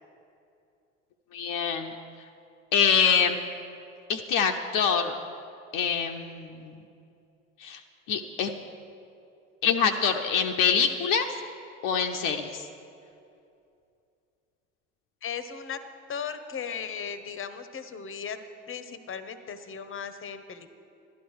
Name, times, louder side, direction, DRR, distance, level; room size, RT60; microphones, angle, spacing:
voice 1, 1.3-1.9 2.7-3.4 4.1-5.1 5.7-6.8 7.6-7.8 8.1-8.5 9.6-11.3 11.8-12.6, left 6 dB, 55° left, 4 dB, 0.8 m, -25 dB
voice 2, 15.2-15.8 16.1-18.4 18.7-20.8, left 7 dB, 35° left, 11 dB, 1.0 m, -37 dB
12.0 x 11.5 x 4.7 m, 2.6 s
hypercardioid pair, 60°, 38 cm